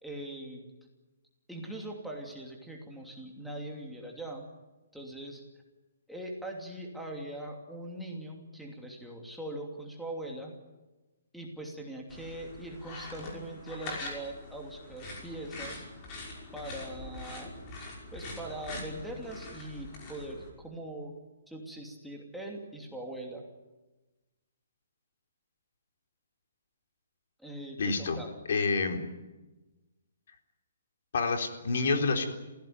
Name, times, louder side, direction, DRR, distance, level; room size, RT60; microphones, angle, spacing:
voice 1, 0.0-0.7 1.5-4.4 4.9-5.4 6.1-10.5 11.3-15.9 16.5-17.5 18.1-21.1 21.5-23.4 27.4-28.3, right 1 dB, ahead, -1 dB, 2.8 m, -41 dB
sound 1, 12.1-20.5, left 2 dB, 20° left, 5.7 m, -43 dB
voice 2, 27.8-28.2 28.5-29.0 31.1-32.3, left 4 dB, 55° left, 4 dB, 4.0 m, -28 dB
28.0 x 16.5 x 9.4 m, 1.1 s
hypercardioid pair, 170°, 0 cm